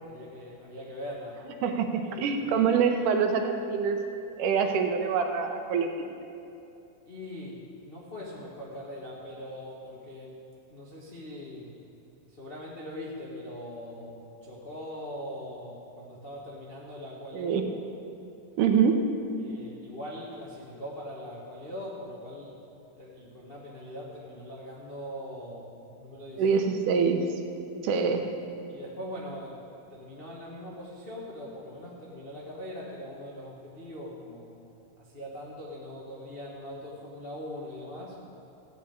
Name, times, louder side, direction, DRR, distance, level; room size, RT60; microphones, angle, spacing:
voice 1, 0.0-1.4 2.0-2.7 7.0-10.4 10.7-11.7 12.3-17.6 19.4-22.5 23.0-26.4 28.7-29.6 29.9-34.5 35.0-38.2, left 1 dB, 50° left, -5 dB, 0.6 m, -41 dB
voice 2, 1.6-4.0 4.4-6.1 17.3-17.6 18.6-19.1 26.4-27.2 27.8-28.3, right 6 dB, 80° right, 6 dB, 2.3 m, -25 dB
15.0 x 6.0 x 8.7 m, 2.7 s
omnidirectional pair, 3.7 m